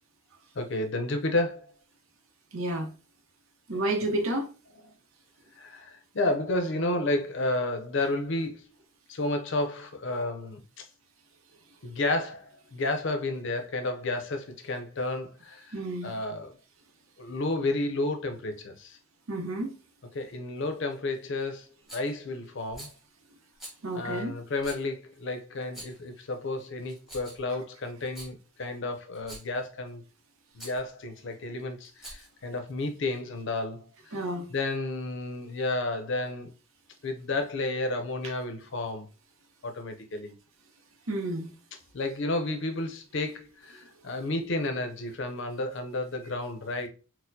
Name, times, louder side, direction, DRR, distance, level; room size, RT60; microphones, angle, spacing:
voice 1, 0.6-1.7 3.7-3.8 5.6-8.7 9.1-10.9 11.8-15.7 16.0-16.6 17.2-19.0 20.1-22.9 23.9-30.0 30.5-34.2 34.5-36.5 37.0-39.1 39.6-40.3 41.9-46.9, left 2 dB, 60° left, 0.5 m, -31 dB
voice 2, 2.5-2.9 3.7-4.5 15.7-16.1 19.3-19.7 23.8-24.3 34.1-34.5 41.1-41.5, right 1 dB, 75° right, 0.7 m, -30 dB
Rattle, 21.9-22.2 22.7-23.0 23.6-23.8 24.6-24.8 25.6-26.1 26.8-27.5 28.0-28.3 29.1-29.6 30.6-30.8 31.8-32.4, right 1 dB, ahead, 1.1 m, -45 dB
4.2 x 2.1 x 2.6 m
head